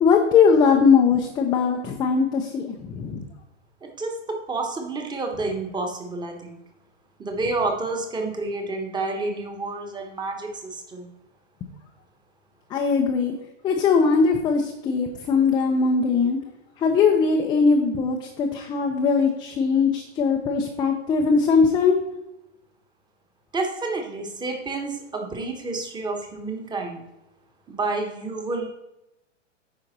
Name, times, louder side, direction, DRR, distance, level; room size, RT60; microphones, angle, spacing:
voice 1, 0.0-3.3 12.7-13.3 13.6-16.4 16.8-22.0, left 5 dB, 10° left, 2 dB, 0.4 m, -20 dB
voice 2, 3.8-6.6 7.2-11.1 23.5-27.0 27.7-28.7, right 3 dB, 10° right, 4 dB, 1.2 m, -29 dB
8.9 x 5.0 x 4.2 m, 0.91 s
figure-of-eight pair, 110°, 37 cm